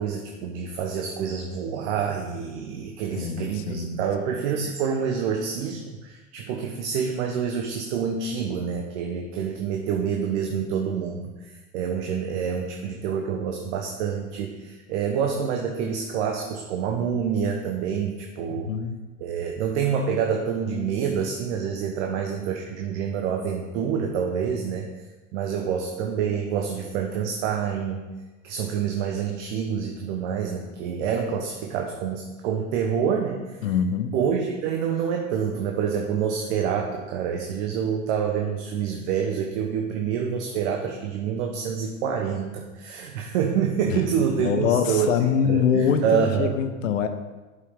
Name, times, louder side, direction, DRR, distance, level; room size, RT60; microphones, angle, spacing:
voice 1, 0.0-18.8 19.2-24.9 25.3-28.1 28.4-33.6 34.1-46.6, right 7 dB, 60° right, 3 dB, 1.0 m, -27 dB
voice 2, 3.1-4.0 18.5-19.0 33.6-34.1 44.4-47.1, left 7 dB, 75° left, 9 dB, 0.9 m, -24 dB
11.5 x 5.6 x 3.7 m, 1.2 s
hypercardioid pair, 85°, 40 cm